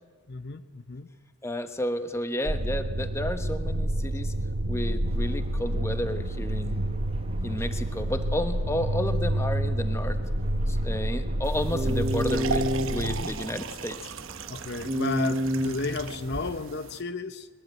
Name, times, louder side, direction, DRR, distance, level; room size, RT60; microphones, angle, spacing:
voice 1, 0.3-1.1 14.5-17.5, left 3 dB, 50° left, 12 dB, 0.8 m, -33 dB
voice 2, 1.4-4.3 4.7-6.9 7.4-10.2 10.7-14.1, left 1 dB, 10° left, 9 dB, 1.0 m, -32 dB
sound 1, 2.5-13.3, right 1 dB, 80° right, 1.4 m, -29 dB
sound 2, 5.1-16.6, equal, 25° right, 1.2 m, -34 dB
sound 3, 11.4-17.0, right 6 dB, 65° right, 1.0 m, -38 dB
21.0 x 21.0 x 8.9 m, 1.5 s
head